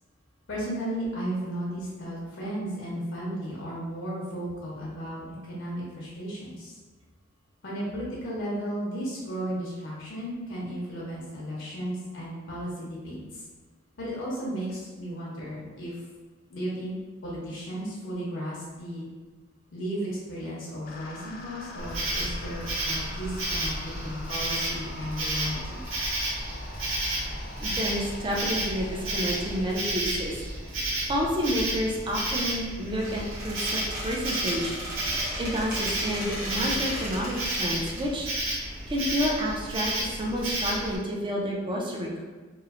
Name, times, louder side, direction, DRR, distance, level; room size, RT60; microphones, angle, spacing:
voice 1, 0.5-6.8 7.6-13.4 14.0-16.0 16.5-16.9 17.2-19.1 19.7-25.8, equal, 70° left, -6 dB, 0.7 m, -34 dB
sound 1, 20.8-29.8, left 1 dB, 45° left, 0.3 m, -43 dB
Insect, 21.8-41.0, right 1 dB, 70° right, 0.7 m, -32 dB
voice 2, 27.6-30.7 31.1-35.1 35.4-38.3 38.9-42.2, equal, 25° right, -2 dB, 0.4 m, -30 dB
Squeak, 32.9-38.0, equal, 45° right, 1.0 m, -37 dB
3.0 x 2.0 x 2.4 m, 1.4 s
head